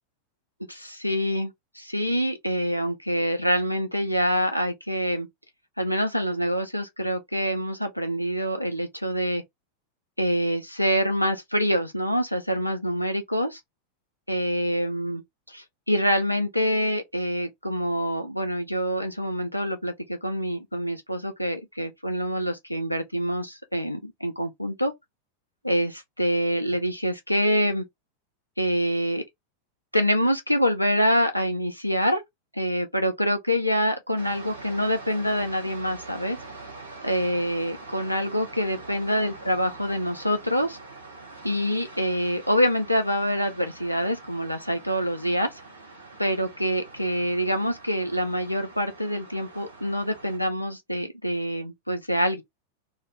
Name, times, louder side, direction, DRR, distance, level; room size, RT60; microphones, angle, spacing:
voice 1, 0.7-5.3 5.8-9.4 10.2-13.6 14.3-15.2 15.5-24.9 25.6-27.8 28.6-29.2 29.9-32.2 32.5-36.4 37.0-40.8 41.4-45.5 46.2-52.4, equal, 90° left, 0.4 m, -26 dB
sound 1, 34.2-50.4, right 3 dB, 75° right, 0.9 m, -44 dB
2.3 x 2.0 x 3.2 m
figure-of-eight pair, 90°, 0 cm